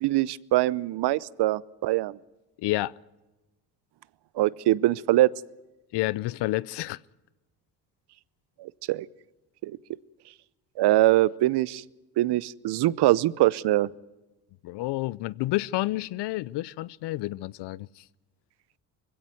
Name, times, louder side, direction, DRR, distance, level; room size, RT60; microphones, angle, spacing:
voice 1, 0.0-2.2 4.4-5.3 8.6-9.1 9.6-9.7 10.8-11.8 12.2-13.9, right 16 dB, 65° right, 0.7 m, -23 dB
voice 2, 2.6-2.9 5.9-7.0 14.6-18.0, left 18 dB, 70° left, 0.7 m, -29 dB
21.0 x 16.5 x 9.2 m
supercardioid pair, 75°, 43 cm